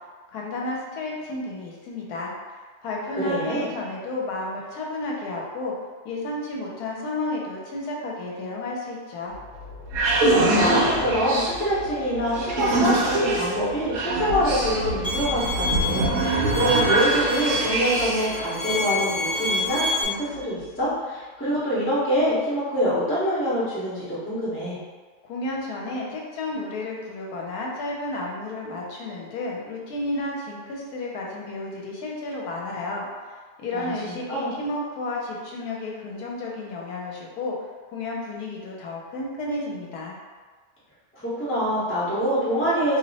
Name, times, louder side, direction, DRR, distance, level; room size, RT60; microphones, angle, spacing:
voice 1, 0.3-2.3 2.8-5.7 6.0-9.3 25.2-37.5 37.9-40.2, left 2 dB, 80° left, -2 dB, 1.1 m, -32 dB
voice 2, 3.2-3.7 10.3-24.8 33.7-34.5 41.2-43.0, equal, 10° left, -10 dB, 0.8 m, -25 dB
sound 1, 9.3-18.4, right 2 dB, 65° right, 0.8 m, -24 dB
Bowed string instrument, 15.0-20.0, left 2 dB, 50° left, 0.5 m, -28 dB
2.6 x 2.1 x 4.0 m, 1.4 s
omnidirectional pair, 1.6 m